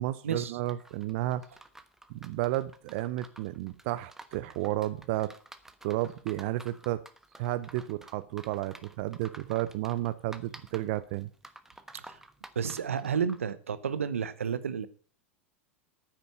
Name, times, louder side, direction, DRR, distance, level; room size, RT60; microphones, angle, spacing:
voice 1, 0.0-1.4 2.1-5.3 5.8-7.0 7.4-11.3, right 15 dB, 60° right, 0.6 m, -32 dB
sound 1, 0.7-13.5, right 1 dB, 5° right, 1.2 m, -52 dB
voice 2, 12.5-14.9, right 7 dB, 85° right, 0.9 m, -31 dB
9.6 x 9.0 x 6.6 m
hypercardioid pair, 95°, 7 cm